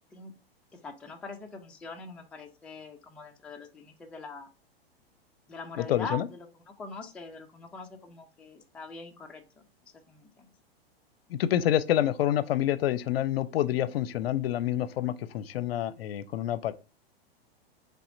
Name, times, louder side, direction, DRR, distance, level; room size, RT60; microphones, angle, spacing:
voice 1, 0.8-4.5 5.5-6.5 6.8-9.4 10.1-10.5, left 3 dB, 5° left, 0.3 m, -43 dB
voice 2, 5.8-6.3 11.3-16.7, left 12 dB, 70° left, 0.5 m, -27 dB
4.1 x 3.5 x 2.6 m
hypercardioid pair, 115°, 31 cm